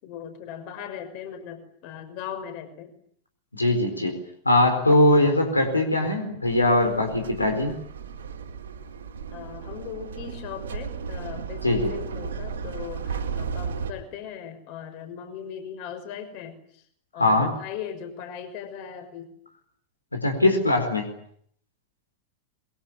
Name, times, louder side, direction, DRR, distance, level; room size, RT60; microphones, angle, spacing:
voice 1, 0.0-2.9 9.3-16.8 17.1-19.3, left 8 dB, 45° left, 8 dB, 6.0 m, -38 dB
voice 2, 3.5-4.2 4.4-7.8 11.6-11.9 17.2-17.5 20.1-21.1, left 1 dB, 85° left, 5 dB, 4.4 m, -21 dB
sound 1, 6.4-13.9, right 6 dB, 65° right, 4.0 m, -35 dB
26.0 x 23.5 x 9.2 m, 0.67 s
figure-of-eight pair, 90°, 0 cm